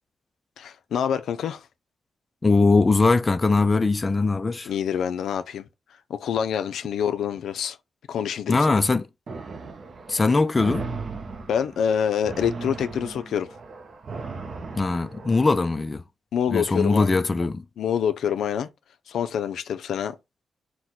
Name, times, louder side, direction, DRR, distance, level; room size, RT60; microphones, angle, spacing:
voice 1, 0.6-1.6 4.7-5.7 6.1-7.8 8.1-8.8 11.5-13.5 16.3-17.1 17.4-17.5 17.8-18.7 19.1-20.2, left 8 dB, 85° left, 0.4 m, -26 dB
voice 2, 2.4-4.7 8.5-9.1 10.1-10.9 14.8-16.0 16.5-17.6, left 3 dB, 25° left, 0.4 m, -21 dB
sound 1, 9.3-15.7, right 4 dB, 50° right, 0.6 m, -37 dB
4.5 x 2.2 x 4.0 m
cardioid pair, 105°, 0 cm